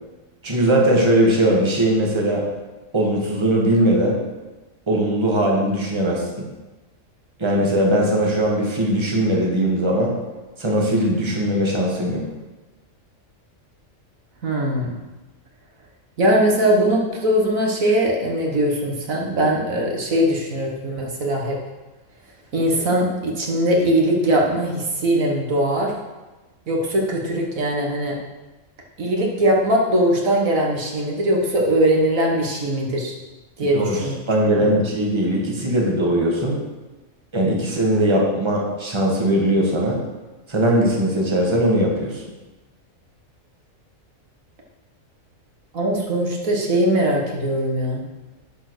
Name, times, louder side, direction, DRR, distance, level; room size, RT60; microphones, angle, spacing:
voice 1, 0.4-2.4 2.9-4.2 4.9-6.4 7.4-10.1 10.6-12.2 33.7-36.6 37.3-40.0 40.5-42.2, right 1 dB, 20° right, -2 dB, 1.6 m, -20 dB
voice 2, 14.4-15.0 16.2-21.6 22.5-25.9 26.7-28.2 29.0-33.1 33.6-34.1 34.6-34.8 45.7-48.0, right 1 dB, 80° right, -1 dB, 1.9 m, -20 dB
10.5 x 4.4 x 6.2 m, 1.1 s
omnidirectional pair, 1.4 m